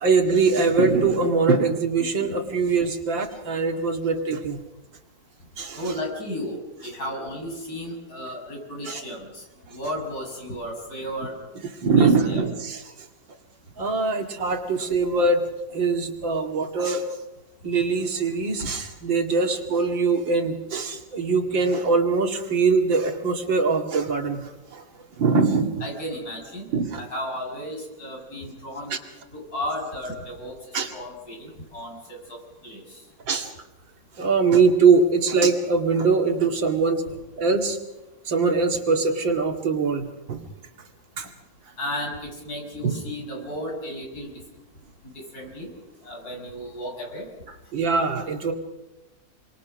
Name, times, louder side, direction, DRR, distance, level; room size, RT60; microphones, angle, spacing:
voice 1, 0.0-4.6 5.6-5.8 8.9-9.0 11.8-12.8 13.8-15.4 15.7-17.2 17.6-24.8 25.2-25.8 26.7-27.0 28.9-29.0 30.7-30.9 33.3-33.5 34.2-37.0 37.4-37.8 38.3-40.4 41.2-41.3 42.8-42.9 47.7-48.5, right 4 dB, 90° right, 4 dB, 2.9 m, -22 dB
voice 2, 5.8-11.3 12.0-12.4 25.8-26.7 27.0-29.0 29.3-32.4 32.6-33.0 41.8-44.3 45.1-45.7 46.0-47.3, equal, 55° left, 1 dB, 7.2 m, -34 dB
29.0 x 23.5 x 6.3 m, 1.0 s
omnidirectional pair, 2.0 m